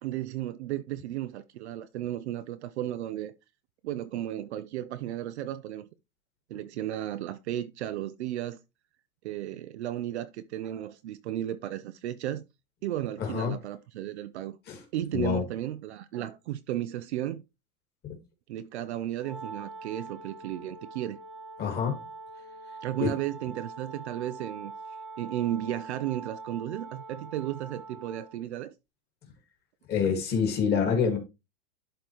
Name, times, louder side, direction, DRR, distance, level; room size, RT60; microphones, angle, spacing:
voice 1, 0.0-3.3 3.8-5.9 6.5-8.6 9.2-12.4 12.8-14.6 14.9-17.4 18.5-21.2 22.8-24.7 25.2-28.7, right 13 dB, 50° right, 0.6 m, -34 dB
voice 2, 13.2-13.5 14.7-14.8 15.1-15.4 18.0-18.2 21.6-22.0 23.0-23.1 29.9-31.2, left 6 dB, 20° left, 2.0 m, -26 dB
Wind instrument woodwind instrument, 19.2-28.4, right 3 dB, ahead, 0.7 m, -44 dB
11.5 x 3.9 x 3.1 m
supercardioid pair, 160°, 43 cm